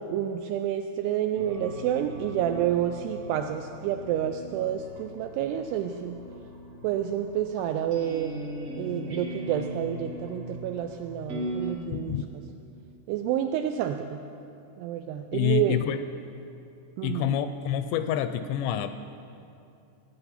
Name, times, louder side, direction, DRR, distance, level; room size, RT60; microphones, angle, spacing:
voice 1, 0.0-6.2 6.8-8.4 8.8-12.4 13.1-14.2 14.8-15.8 17.0-17.3, right 10 dB, 85° right, 6 dB, 2.4 m, -29 dB
sound 1, 1.4-11.7, equal, 50° right, 2.1 m, -39 dB
voice 2, 11.9-12.3 15.3-16.0 17.0-18.9, left 10 dB, 85° left, 10 dB, 2.6 m, -27 dB
17.0 x 9.2 x 5.7 m, 2.6 s
omnidirectional pair, 5.2 m